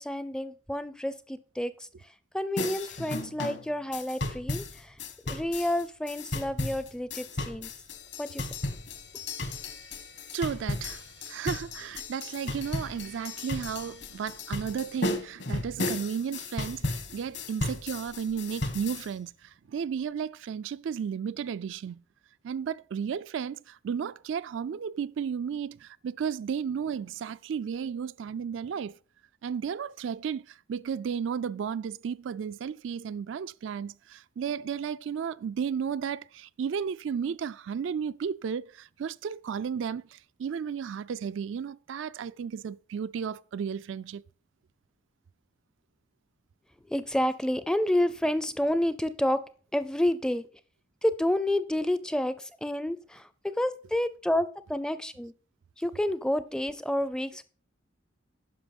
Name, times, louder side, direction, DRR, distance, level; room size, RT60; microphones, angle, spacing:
voice 1, 0.0-5.0 5.3-7.7 8.2-8.5 46.9-49.4 49.7-50.4 51.0-55.3 55.8-57.4, left 1 dB, 5° left, 0.4 m, -29 dB
sound 1, 2.6-19.1, left 2 dB, 60° left, 1.4 m, -35 dB
voice 2, 10.3-22.0 22.4-28.9 29.4-44.2, right 7 dB, 75° right, 0.3 m, -33 dB
10.0 x 5.9 x 5.3 m
head